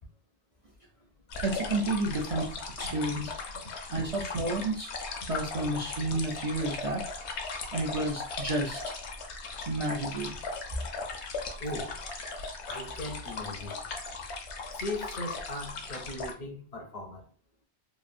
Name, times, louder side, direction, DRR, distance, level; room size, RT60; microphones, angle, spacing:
sound 1, 1.3-16.3, left 3 dB, 70° left, 0.9 m, -38 dB
voice 1, 1.4-3.3 3.9-4.9 5.3-7.4 7.7-8.8 9.7-10.3, right 2 dB, 60° right, 0.3 m, -31 dB
voice 2, 11.6-12.0 12.7-13.8 14.7-17.3, left 1 dB, 50° left, 0.5 m, -38 dB
3.0 x 2.3 x 2.5 m
omnidirectional pair, 1.2 m